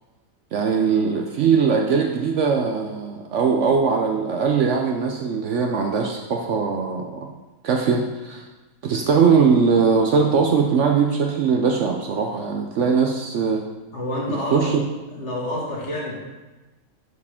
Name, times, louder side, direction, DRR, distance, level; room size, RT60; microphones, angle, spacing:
voice 1, 0.5-7.3 7.6-8.4 8.8-13.6 14.3-14.8, right 5 dB, 65° right, 2 dB, 0.8 m, -20 dB
voice 2, 13.9-14.7 15.1-16.2, left 1 dB, 50° left, -4 dB, 1.9 m, -28 dB
10.5 x 4.8 x 3.5 m, 1.2 s
omnidirectional pair, 1.6 m